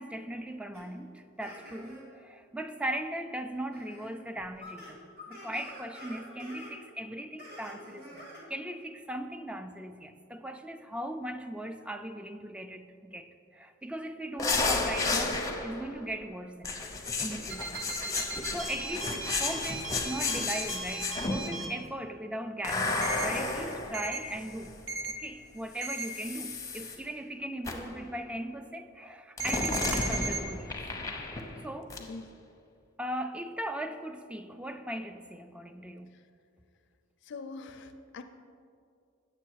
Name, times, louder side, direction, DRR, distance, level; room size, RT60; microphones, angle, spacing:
voice 1, 0.0-16.8 17.2-17.8 18.1-24.7 25.2-30.7 31.6-32.0 33.0-36.1, right 1 dB, 5° right, 8 dB, 0.3 m, -39 dB
sound 1, 0.7-0.8 1.4-2.0 2.8-2.9 3.7-4.1 4.4-6.7 7.4-8.4, left 1 dB, 50° right, 2.0 m, -47 dB
sound 2, 14.4-15.9 16.6-21.6 22.6-24.8 25.8-27.0 27.6-28.0 29.4-31.6 31.9-32.1, left 3 dB, 15° left, 0.7 m, -33 dB
sound 3, 17.5-21.7 23.0-23.3 23.9-24.2 24.9-25.1 25.8-26.1 29.4-30.4, right 3 dB, 65° right, 0.9 m, -36 dB
voice 2, 37.2-38.2, left 3 dB, 60° left, 9 dB, 0.4 m, -43 dB
7.9 x 6.8 x 4.6 m, 2.4 s
head